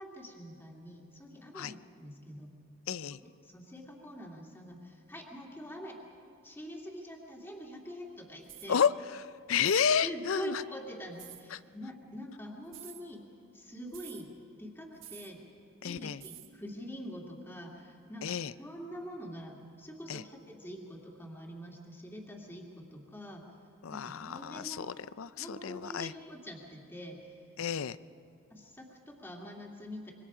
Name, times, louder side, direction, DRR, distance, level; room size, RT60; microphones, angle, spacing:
voice 1, 0.0-2.5 3.2-6.0 6.4-8.8 10.0-13.2 13.5-14.3 14.6-15.4 15.8-23.4 23.9-24.9 25.4-27.4 28.5-30.1, equal, 10° left, 0 dB, 2.1 m, -45 dB
voice 2, 2.9-3.2 8.7-9.2 9.5-10.6 11.5-11.6 15.8-16.2 18.2-18.5 20.1-20.2 23.8-26.1 27.6-28.0, left 7 dB, 80° left, 16 dB, 0.5 m, -31 dB
sound 1, 8.4-8.7 9.6-9.9 11.2-11.4 12.7-13.0 13.9-14.2 15.0-15.3 16.2-16.5, right 12 dB, 70° right, 1.5 m, -49 dB
25.5 x 23.5 x 4.9 m, 2.6 s
head